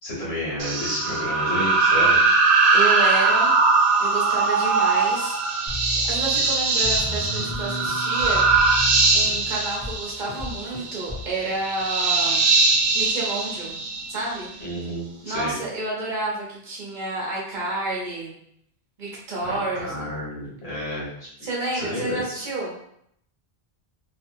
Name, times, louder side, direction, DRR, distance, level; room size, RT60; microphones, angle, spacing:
voice 1, 0.0-2.2 14.6-15.5 19.4-21.3 21.7-22.2, equal, 90° left, -7 dB, 1.5 m, -31 dB
sound 1, 0.6-14.5, right 3 dB, 85° right, 0.8 m, -21 dB
voice 2, 2.7-3.5 4.0-5.4 6.1-8.5 9.1-12.4 12.9-13.7 14.1-14.5 15.2-18.3 19.0-19.9 21.4-22.7, right 2 dB, 55° right, -4 dB, 0.9 m, -29 dB
sound 2, 5.7-11.3, left 2 dB, 25° left, 0.9 m, -34 dB
2.7 x 2.5 x 2.6 m, 0.72 s
omnidirectional pair, 1.0 m